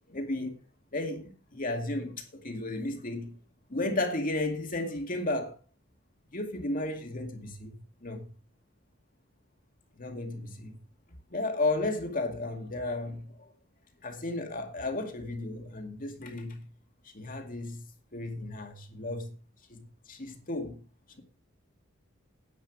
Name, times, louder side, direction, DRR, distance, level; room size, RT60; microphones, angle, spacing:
voice 1, 0.1-0.6 0.9-3.4 3.7-5.6 6.3-8.3 10.0-10.8 11.3-13.5 14.0-16.7 17.0-19.3 19.7-20.8, left 2 dB, 45° left, 2.2 m, -34 dB
10.5 x 9.2 x 4.8 m
head